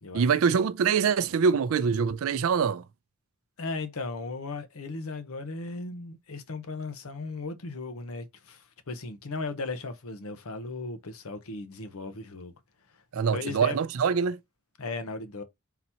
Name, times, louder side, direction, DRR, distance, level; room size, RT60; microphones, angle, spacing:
voice 1, 0.1-2.8 13.1-14.4, right 6 dB, 70° right, 0.4 m, -24 dB
voice 2, 3.6-12.5 13.3-13.8 14.8-15.4, left 3 dB, 85° left, 0.8 m, -36 dB
3.9 x 2.8 x 4.3 m
head